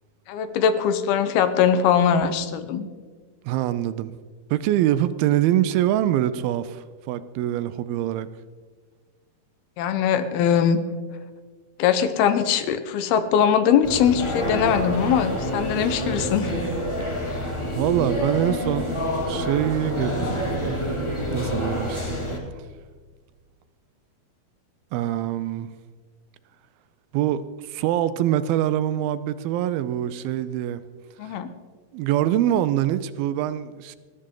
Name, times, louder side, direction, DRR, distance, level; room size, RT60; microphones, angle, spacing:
voice 1, 0.3-2.9 9.8-10.8 11.8-16.5 31.2-31.5, left 8 dB, 80° left, 10 dB, 2.8 m, -21 dB
voice 2, 3.5-4.1 4.5-8.3 17.8-18.9 19.3-20.8 21.3-22.2 24.9-25.7 27.1-30.8 31.2-31.4 31.9-34.0, right 12 dB, 80° right, 13 dB, 2.3 m, -24 dB
sound 1, 13.8-22.4, equal, 30° left, 0.5 m, -27 dB
20.0 x 14.0 x 3.8 m, 1.5 s
omnidirectional pair, 4.5 m